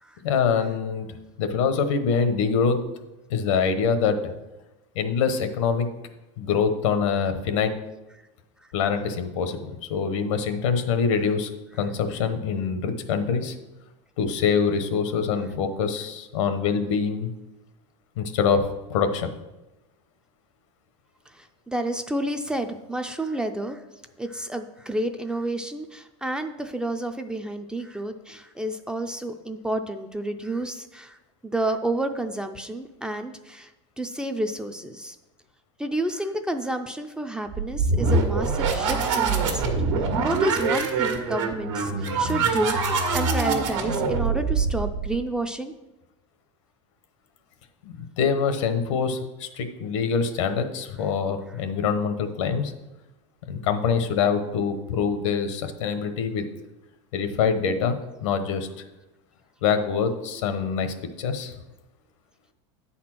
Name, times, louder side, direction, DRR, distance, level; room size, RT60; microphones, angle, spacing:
voice 1, 0.2-1.1 1.4-2.8 3.3-4.2 4.9-5.9 6.4-7.7 8.7-13.5 14.2-17.3 18.2-19.3 47.8-52.7 53.5-56.4 57.1-58.7 59.6-61.5, left 6 dB, 90° left, 8 dB, 1.0 m, -25 dB
voice 2, 21.3-23.8 24.2-31.2 31.4-33.7 34.0-35.2 35.8-39.7 40.0-45.7, right 1 dB, 5° right, 7 dB, 0.3 m, -30 dB
sound 1, 37.5-45.2, right 4 dB, 85° right, 1.4 m, -24 dB
9.3 x 4.3 x 6.0 m, 1.0 s
supercardioid pair, 155°, 15 cm